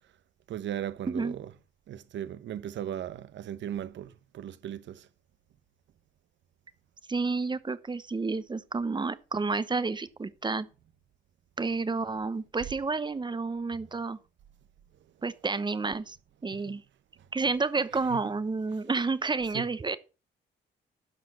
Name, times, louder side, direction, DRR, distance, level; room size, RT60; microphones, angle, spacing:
voice 1, 0.5-1.5 1.9-5.1 16.5-16.8 18.1-18.2 19.5-19.6, right 10 dB, 70° right, 0.9 m, -37 dB
voice 2, 7.1-10.7 11.6-14.2 15.2-16.2 16.4-16.8 17.3-20.0, right 4 dB, 20° right, 0.9 m, -30 dB
12.5 x 5.1 x 6.0 m
cardioid pair, 90°, 20 cm